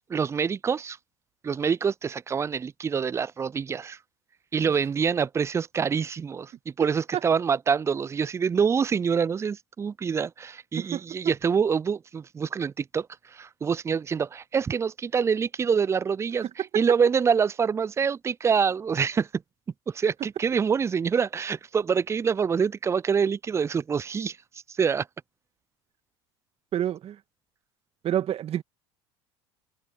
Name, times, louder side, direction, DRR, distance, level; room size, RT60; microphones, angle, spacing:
voice 1, 0.1-1.0 1.4-4.0 4.5-13.1 13.3-16.5 16.8-19.3 19.9-24.4 24.8-25.1, right 6 dB, 20° right, 0.4 m, -26 dB
voice 2, 10.8-11.3 16.4-16.7 26.7-27.2 28.0-28.6, right 11 dB, 45° right, 2.3 m, -29 dB
hypercardioid pair, 75°, 15 cm